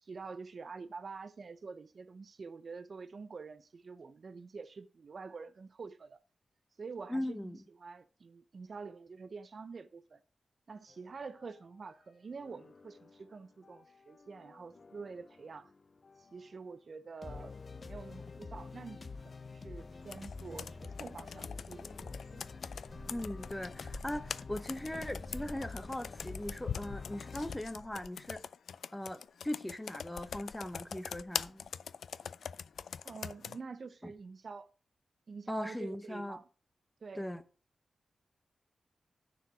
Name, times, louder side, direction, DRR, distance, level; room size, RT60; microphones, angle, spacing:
voice 1, 0.0-6.2 6.8-10.2 10.7-15.7 16.2-22.4 24.9-25.1 33.0-34.7 35.3-36.5 37.0-37.3, right 4 dB, 50° right, 0.6 m, -47 dB
voice 2, 7.1-7.6 23.1-28.4 28.9-31.7 34.0-34.1 35.5-36.4 37.1-37.4, left 1 dB, 10° left, 0.8 m, -39 dB
sound 1, 10.9-12.0 12.3-16.7 17.2-27.6, left 4 dB, 40° left, 0.6 m, -48 dB
Computer keyboard, 20.1-33.6, left 7 dB, 85° left, 0.3 m, -43 dB
sound 2, 21.9-26.9 27.2-27.3 28.1-28.2, right 1 dB, 10° right, 2.2 m, -51 dB
9.9 x 4.7 x 6.2 m
wide cardioid pair, 115°, 0 cm